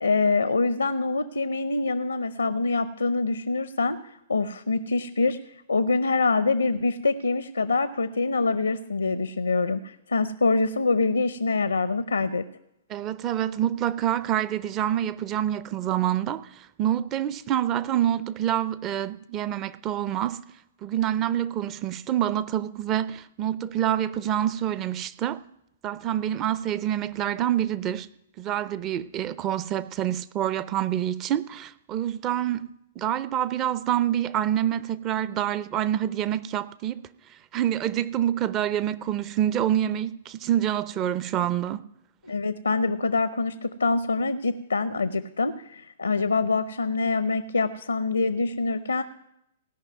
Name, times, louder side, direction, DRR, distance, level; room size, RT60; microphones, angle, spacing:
voice 1, 0.0-4.0 4.3-5.4 5.7-12.4 42.2-49.0, left 3 dB, 85° left, 0.6 m, -25 dB
voice 2, 12.9-20.4 20.8-25.4 25.8-28.1 28.4-32.7 33.0-37.0 37.5-41.8, right 11 dB, 30° right, 0.6 m, -27 dB
17.0 x 5.7 x 9.3 m
figure-of-eight pair, 115°, 0 cm